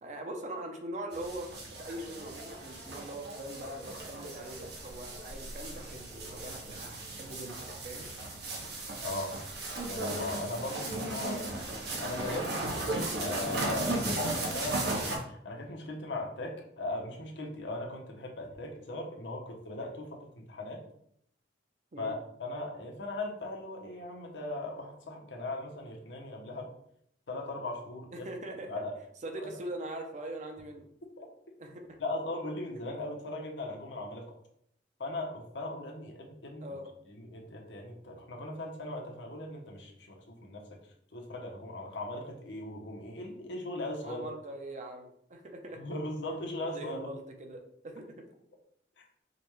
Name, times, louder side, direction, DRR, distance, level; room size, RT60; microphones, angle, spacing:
voice 1, 0.0-1.5 1.8-8.1 21.9-22.2 28.1-28.7 29.2-30.9 31.6-32.0 36.6-36.9 44.0-45.8 46.7-48.3, right 1 dB, 40° right, 3 dB, 0.6 m, -42 dB
sound 1, 1.1-15.2, right 2 dB, 65° right, 0.9 m, -36 dB
voice 2, 9.0-9.4 9.9-11.7 12.0-12.5 13.2-20.1 20.3-20.8 22.0-26.7 27.3-28.3 28.7-28.9 29.4-29.5 31.2-31.3 32.0-34.3 35.0-36.8 37.1-40.6 41.1-44.2 45.8-47.1, left 2 dB, 90° left, 0 dB, 0.8 m, -38 dB
5.0 x 2.2 x 3.0 m, 0.71 s
head